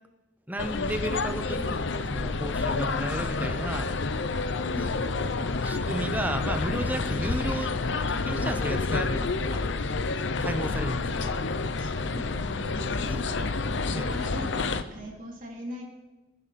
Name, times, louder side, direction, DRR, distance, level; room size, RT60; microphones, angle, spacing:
voice 1, 0.5-3.9 4.9-7.8 8.1-9.7 10.4-11.4 13.9-14.2, right 1 dB, 10° right, 8 dB, 0.8 m, -34 dB
sound 1, 0.6-14.8, left 3 dB, 65° left, 0.7 m, -29 dB
voice 2, 4.6-5.0 11.8-13.6 14.0-15.8, equal, 45° right, -1 dB, 3.3 m, -41 dB
24.5 x 10.0 x 4.3 m, 1.1 s
head